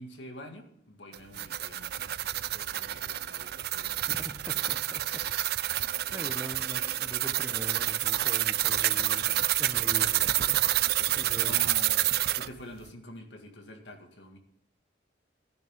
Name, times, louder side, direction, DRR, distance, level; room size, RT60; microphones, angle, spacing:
voice 1, 0.0-4.0 10.1-10.6 10.8-14.4, left 1 dB, 85° left, 4 dB, 2.0 m, -47 dB
sound 1, 1.1-12.5, right 14 dB, 60° right, 0.4 m, -28 dB
voice 2, 4.1-5.3 5.8-11.6, right 1 dB, 15° right, 8 dB, 0.8 m, -43 dB
15.0 x 9.4 x 3.7 m, 0.75 s
head